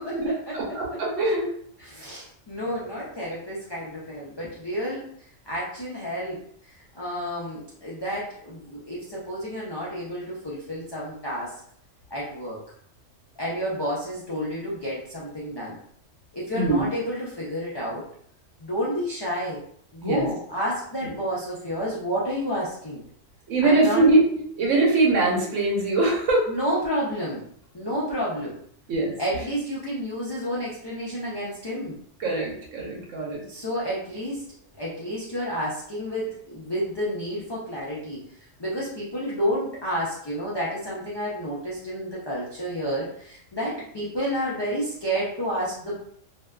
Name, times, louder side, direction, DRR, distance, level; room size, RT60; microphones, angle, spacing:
voice 1, 0.1-1.5 16.5-16.9 20.0-20.3 21.0-21.1 23.5-26.5 28.9-29.1 32.2-33.4, right 2 dB, 80° right, -2 dB, 1.1 m, -22 dB
voice 2, 1.8-5.0 5.5-6.4 6.9-11.5 12.1-12.6 13.4-15.8 16.3-18.0 18.6-19.6 19.9-23.0 23.6-24.0 26.5-27.4 27.7-28.6 29.2-32.0 33.5-34.4 34.8-38.2 38.6-45.9, equal, 45° left, -7 dB, 0.3 m, -30 dB
2.6 x 2.2 x 2.2 m, 0.65 s
omnidirectional pair, 1.3 m